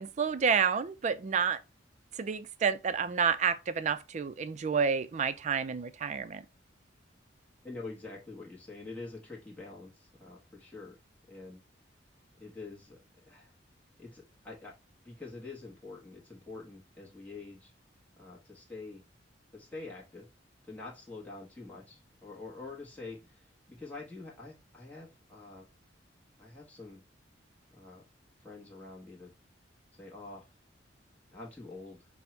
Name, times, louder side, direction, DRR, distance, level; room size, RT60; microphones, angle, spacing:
voice 1, 0.0-1.6 2.2-6.4, right 6 dB, 40° right, 0.4 m, -29 dB
voice 2, 7.6-11.0 11.3-11.6 12.4-13.0 13.2-13.5 14.0-14.7 15.0-17.7 18.2-19.0 19.5-20.3 20.7-25.7 26.4-27.0 27.7-28.0 28.4-29.3 29.9-30.5 31.3-32.1, left 3 dB, 10° left, 1.0 m, -46 dB
5.2 x 2.1 x 4.3 m
head